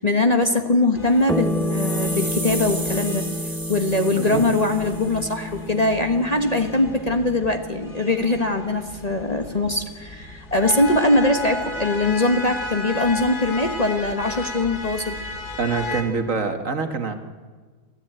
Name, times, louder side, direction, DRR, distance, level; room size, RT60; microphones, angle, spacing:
voice 1, 0.0-3.2 3.7-15.2, left 2 dB, 25° left, 6 dB, 1.3 m, -22 dB
sound 1, 0.9-16.0, left 2 dB, 45° left, 2.6 m, -35 dB
sound 2, 1.2-5.4, equal, 15° right, 1.6 m, -34 dB
sound 3, 1.3-10.1, equal, ahead, 0.4 m, -31 dB
voice 2, 15.6-17.1, right 4 dB, 55° right, 6 dB, 1.9 m, -25 dB
28.5 x 13.5 x 8.9 m, 1.5 s
omnidirectional pair, 1.6 m